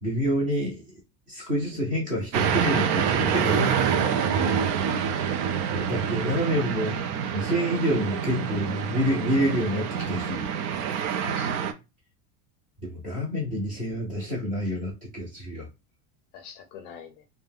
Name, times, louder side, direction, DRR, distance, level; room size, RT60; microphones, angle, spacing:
voice 1, 0.0-1.0 1.3-3.8 4.0-4.2 5.7-7.0 7.3-10.4 12.8-15.7, equal, 20° right, 0.5 m, -28 dB
sound 1, 2.3-11.7, right 7 dB, 70° right, 0.5 m, -26 dB
voice 2, 4.3-5.2 11.2-11.6 16.3-17.2, left 8 dB, 50° left, 0.5 m, -42 dB
2.4 x 2.2 x 3.3 m
cardioid pair, 175°, 47 cm